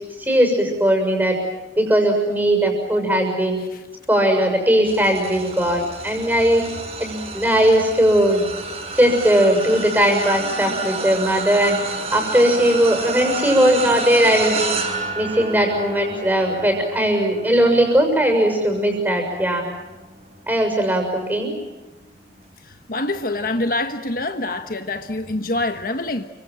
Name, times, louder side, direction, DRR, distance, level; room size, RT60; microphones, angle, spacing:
voice 1, 0.2-1.4 1.8-3.6 4.1-6.6 7.0-8.4 8.9-11.8 12.1-14.8 15.1-19.6 20.5-21.5, equal, 10° right, 4 dB, 6.6 m, -18 dB
sound 1, 4.8-20.4 20.9-21.1 22.4-22.5, right 4 dB, 35° right, 5.3 m, -30 dB
voice 2, 22.6-26.2, left 2 dB, 50° left, 7 dB, 1.3 m, -25 dB
29.5 x 25.5 x 7.8 m, 1.1 s
head